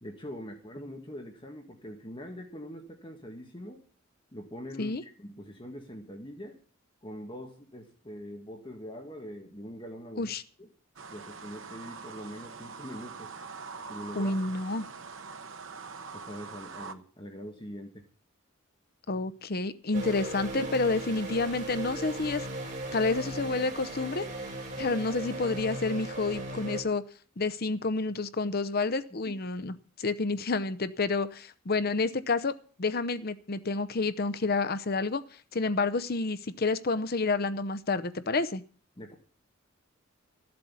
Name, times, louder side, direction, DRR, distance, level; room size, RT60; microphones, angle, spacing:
voice 1, 0.0-3.8 4.3-6.6 7.0-10.3 10.6-10.7 11.1-13.3 13.9-14.4 16.1-18.1 29.2-29.3 39.0-39.2, equal, 25° left, 3 dB, 1.8 m, -43 dB
sound 1, 11.0-16.9, right 5 dB, 65° right, 1.1 m, -43 dB
voice 2, 14.2-14.8 19.1-22.5 22.9-24.3 24.8-27.0 27.4-32.5 32.8-35.2 35.5-38.6, left 3 dB, 45° left, 13 dB, 0.7 m, -29 dB
sound 2, 19.9-26.8, right 1 dB, 40° right, 4.7 m, -37 dB
14.0 x 7.8 x 8.5 m, 0.42 s
head